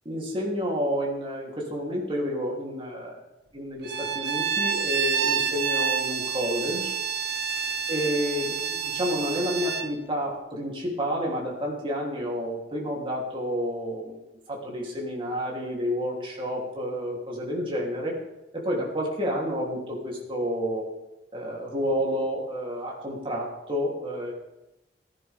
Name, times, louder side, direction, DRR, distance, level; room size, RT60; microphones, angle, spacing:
voice 1, 0.0-3.2 3.5-6.9 7.9-14.2 14.5-18.1 18.5-20.9 21.3-24.3, equal, 30° right, -3 dB, 3.2 m, -30 dB
Bowed string instrument, 3.8-9.9, right 7 dB, 60° right, 0.9 m, -28 dB
16.0 x 15.0 x 3.6 m, 0.96 s
head